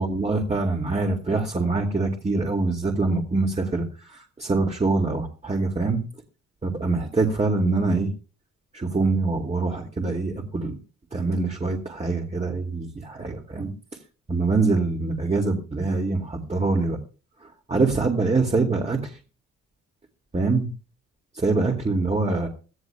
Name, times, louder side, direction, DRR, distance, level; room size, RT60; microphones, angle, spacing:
voice 1, 0.0-3.9 4.4-6.0 6.6-8.1 8.7-10.8 11.1-13.7 14.3-17.0 17.7-19.1 20.3-20.7 21.3-22.5, right 3 dB, 20° right, 2 dB, 2.3 m, -24 dB
23.0 x 14.5 x 2.3 m, 0.36 s
cardioid pair, 90°, 30 cm